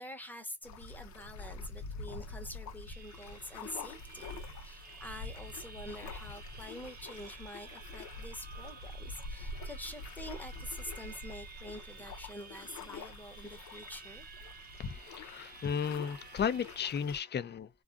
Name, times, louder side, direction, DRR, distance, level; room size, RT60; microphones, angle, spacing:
voice 1, 0.0-14.2, left 1 dB, 5° left, 0.9 m, -46 dB
sound 1, 0.6-17.2, left 3 dB, 70° left, 0.7 m, -46 dB
sound 2, 2.9-16.9, right 6 dB, 30° right, 0.6 m, -53 dB
voice 2, 14.8-17.7, left 7 dB, 35° left, 0.5 m, -34 dB
2.4 x 2.4 x 2.3 m
cardioid pair, 90°, 30 cm